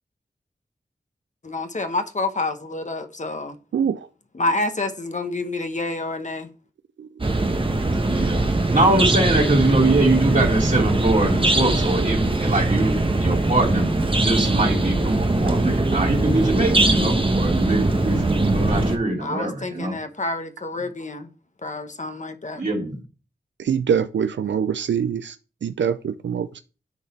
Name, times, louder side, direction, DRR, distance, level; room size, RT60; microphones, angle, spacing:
voice 1, 1.4-3.6 4.3-6.5 19.2-21.3 21.6-22.6, left 2 dB, 40° left, 1.0 m, -28 dB
voice 2, 3.7-4.1 7.0-7.1 23.6-26.6, right 7 dB, 85° right, 0.4 m, -24 dB
sound 1, 7.2-19.0, right 2 dB, 30° right, 1.0 m, -21 dB
voice 3, 8.0-8.4 8.7-19.9 22.5-23.0, right 2 dB, 45° right, 2.9 m, -23 dB
9.7 x 4.0 x 4.3 m
wide cardioid pair, 60°, 18 cm